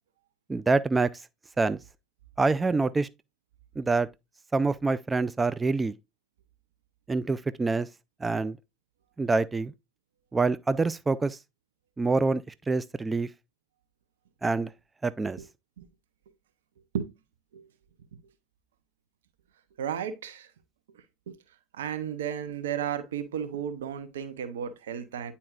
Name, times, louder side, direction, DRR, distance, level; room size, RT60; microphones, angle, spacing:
voice 1, 0.5-1.1 1.6-1.8 2.4-3.1 3.8-4.1 4.5-5.9 7.1-7.9 8.2-8.6 9.2-9.7 10.3-11.4 12.0-13.3 14.4-14.7 15.0-15.4, right 3 dB, 20° right, 0.3 m, -26 dB
voice 2, 19.8-20.5 21.3-21.4 21.7-25.3, right 8 dB, 85° right, 0.8 m, -33 dB
9.4 x 4.2 x 2.4 m
hypercardioid pair, 75°, 0 cm